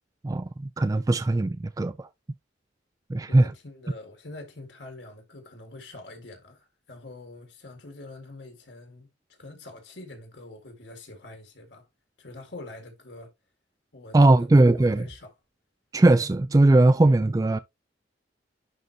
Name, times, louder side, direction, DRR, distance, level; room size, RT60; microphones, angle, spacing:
voice 1, 0.2-2.1 3.1-3.5 14.1-15.0 15.9-17.6, right 2 dB, 20° right, 0.3 m, -19 dB
voice 2, 3.2-11.9 12.2-13.3 13.9-15.3, left 2 dB, 70° left, 1.9 m, -45 dB
11.0 x 3.9 x 2.9 m
head